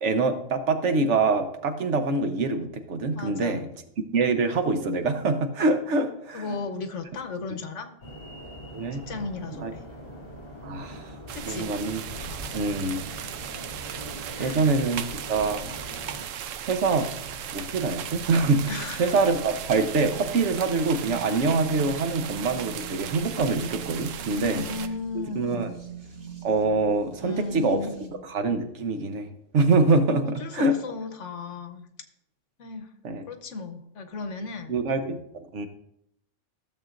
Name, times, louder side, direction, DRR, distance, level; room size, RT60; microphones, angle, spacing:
voice 1, 0.0-3.7 4.1-6.6 8.7-9.1 9.6-9.7 10.6-11.1 11.4-12.0 12.5-13.1 14.4-15.7 16.6-17.1 17.4-24.6 25.4-25.7 26.4-27.8 28.2-29.3 29.5-30.8 33.0-33.2 34.7-35.7, right 3 dB, 70° right, 7 dB, 1.2 m, -25 dB
voice 2, 3.2-3.6 6.3-7.9 8.9-9.9 11.3-11.7 14.4-14.7 18.7-19.1 24.3-25.7 27.2-28.2 30.2-31.9 32.6-32.9 33.3-34.7, left 4 dB, 75° left, 6 dB, 1.3 m, -35 dB
sound 1, 8.0-16.3, equal, 50° left, 2.8 m, -42 dB
sound 2, 11.3-24.9, right 9 dB, 85° right, 1.0 m, -37 dB
sound 3, 16.9-28.1, right 7 dB, 55° right, 1.4 m, -43 dB
15.0 x 7.3 x 2.5 m, 0.75 s
omnidirectional pair, 1.3 m